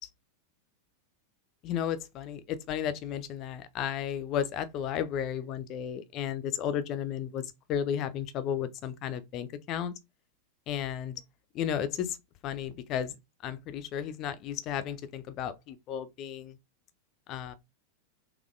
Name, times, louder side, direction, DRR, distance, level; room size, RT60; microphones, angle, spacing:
voice 1, 1.6-9.9 10.7-11.1 11.5-12.2 12.4-13.2 13.4-16.6 17.3-17.5, left 9 dB, 35° left, 0.5 m, -33 dB
4.0 x 2.9 x 2.5 m
figure-of-eight pair, 90°, 0 cm